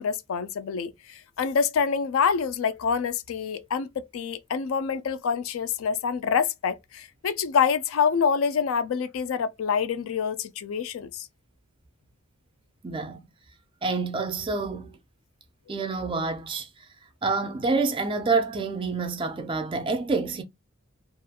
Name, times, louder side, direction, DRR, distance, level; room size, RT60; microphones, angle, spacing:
voice 1, 0.0-11.3, left 6 dB, 75° left, 0.3 m, -26 dB
voice 2, 12.8-13.2 13.8-14.9 15.7-16.7 17.2-20.4, right 4 dB, 25° right, 0.3 m, -27 dB
2.4 x 2.2 x 2.7 m
head